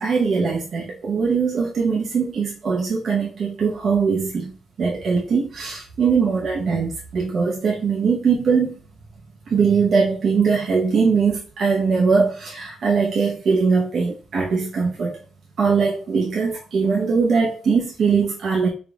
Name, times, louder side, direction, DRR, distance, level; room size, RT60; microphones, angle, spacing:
voice 1, 0.0-4.5 4.8-8.7 9.5-15.2 15.6-18.7, right 5 dB, 60° right, 0.8 m, -21 dB
3.6 x 3.6 x 2.3 m
cardioid pair, 90°, 0 cm